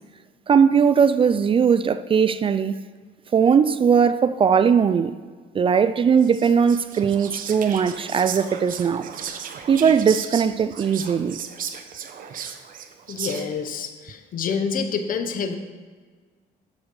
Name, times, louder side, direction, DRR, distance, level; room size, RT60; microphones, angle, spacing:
voice 1, 0.5-2.7 3.3-5.1 5.5-9.1 9.7-11.4, right 6 dB, 30° right, 0.4 m, -19 dB
Whispering, 6.2-13.7, right 8 dB, 55° right, 0.9 m, -35 dB
voice 2, 13.1-15.5, left 6 dB, 55° left, 1.1 m, -27 dB
10.5 x 7.4 x 4.8 m
cardioid pair, 110°, 17 cm